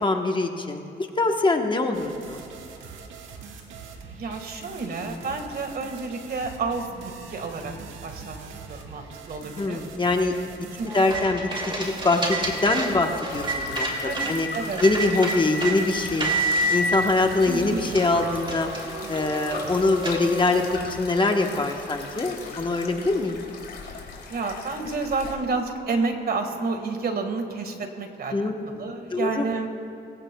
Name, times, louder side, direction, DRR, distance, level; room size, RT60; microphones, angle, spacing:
voice 1, 0.0-2.4 9.6-10.3 10.9-11.5 11.8-14.5 14.8-16.3 16.7-18.7 19.1-23.4 28.3-28.5 29.1-29.5, left 2 dB, 25° left, 4 dB, 1.1 m, -23 dB
sound 1, 1.9-21.1, right 5 dB, 85° right, 1.5 m, -43 dB
voice 2, 4.1-7.7 8.0-9.8 10.7-11.1 14.0-14.8 17.5-17.9 24.3-29.7, right 4 dB, 50° right, 5 dB, 1.7 m, -30 dB
sound 2, 10.9-14.3 14.8-15.8 16.2-16.8 17.4-17.5 17.9-20.7, right 2 dB, 25° right, 2.5 m, -29 dB
sound 3, 13.2-25.3, left 4 dB, 55° left, 2.9 m, -40 dB
23.0 x 15.5 x 2.3 m, 2.9 s
cardioid pair, 90°, 20 cm